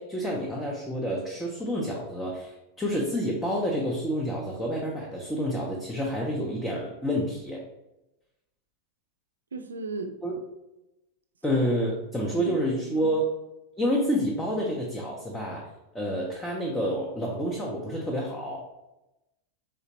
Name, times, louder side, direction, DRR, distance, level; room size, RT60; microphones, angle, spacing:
voice 1, 0.0-7.6 10.2-10.3 11.4-13.3 13.8-15.7 15.9-18.6, equal, 10° left, -3 dB, 0.6 m, -28 dB
voice 2, 9.5-10.1 12.3-13.1, right 3 dB, 70° right, 7 dB, 0.3 m, -36 dB
3.4 x 2.9 x 2.8 m, 0.94 s
figure-of-eight pair, 90°, 0 cm